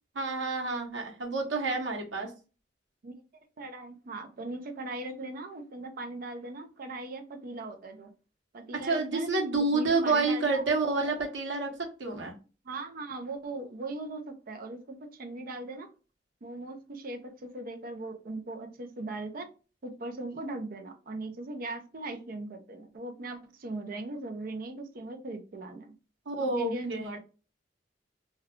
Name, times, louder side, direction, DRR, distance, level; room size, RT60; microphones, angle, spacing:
voice 1, 0.1-2.3 8.7-11.7 12.0-12.3 26.3-27.1, right 3 dB, 90° right, 0.9 m, -29 dB
voice 2, 3.6-8.1 8.5-9.3 9.7-10.7 12.6-15.9 16.4-19.5 19.8-25.9 26.4-27.2, right 2 dB, 50° right, 0.5 m, -39 dB
2.3 x 2.2 x 3.5 m
head